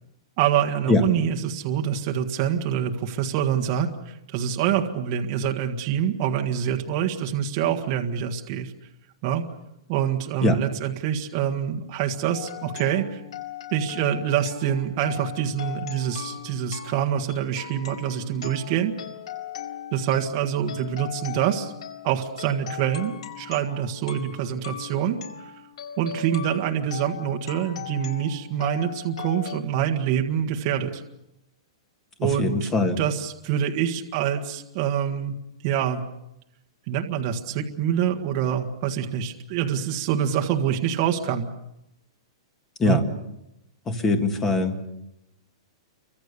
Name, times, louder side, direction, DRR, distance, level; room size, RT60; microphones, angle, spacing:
voice 1, 0.4-8.7 9.2-9.4 9.9-13.2 13.7-18.9 19.9-21.7 22.0-25.2 26.0-31.0 32.2-32.7 33.0-35.4 35.6-36.0 36.9-41.5 42.8-43.0, right 9 dB, 25° right, 3 dB, 1.6 m, -26 dB
sound 1, 12.3-29.6, left 9 dB, 75° left, 4.4 m, -39 dB
voice 2, 32.2-33.0 42.8-43.0 43.9-44.8, left 2 dB, 10° left, 7 dB, 1.7 m, -22 dB
29.5 x 24.5 x 6.9 m, 0.87 s
hypercardioid pair, 180°, 3 cm